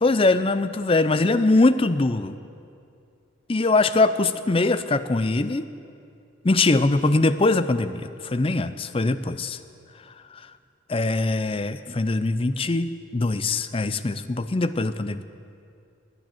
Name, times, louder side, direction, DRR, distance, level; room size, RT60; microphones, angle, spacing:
voice 1, 0.0-2.3 3.5-5.7 6.4-9.6 10.3-10.4 10.9-15.2, left 2 dB, 25° left, 12 dB, 0.5 m, -22 dB
20.5 x 9.1 x 7.7 m, 2.5 s
head